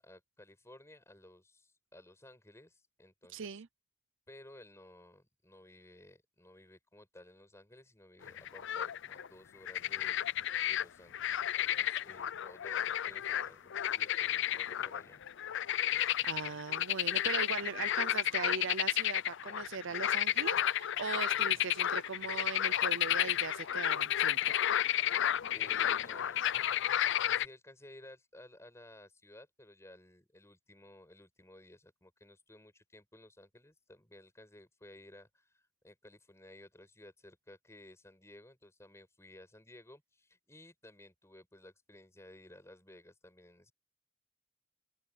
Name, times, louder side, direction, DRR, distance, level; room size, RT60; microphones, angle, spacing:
voice 1, 0.0-3.6 4.3-15.2 24.9-26.4 27.1-43.7, left 1 dB, 15° left, 6.5 m, -56 dB
voice 2, 3.3-3.7 15.9-24.6, right 5 dB, 60° right, 0.6 m, -40 dB
sound 1, 8.2-9.3 9.7-10.8 11.1-27.5, left 11 dB, 60° left, 0.5 m, -32 dB
open air
head